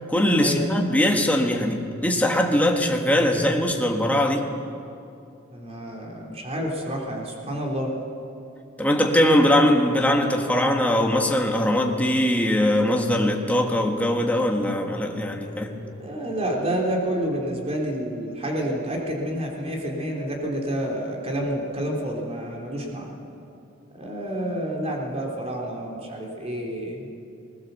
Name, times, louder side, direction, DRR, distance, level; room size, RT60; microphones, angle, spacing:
voice 1, 0.1-4.5 8.8-15.8, left 1 dB, 10° left, 1 dB, 1.6 m, -21 dB
voice 2, 5.5-7.9 15.6-23.2 23.9-27.1, right 1 dB, 30° right, -1 dB, 3.7 m, -29 dB
20.0 x 19.5 x 7.0 m, 2.6 s
head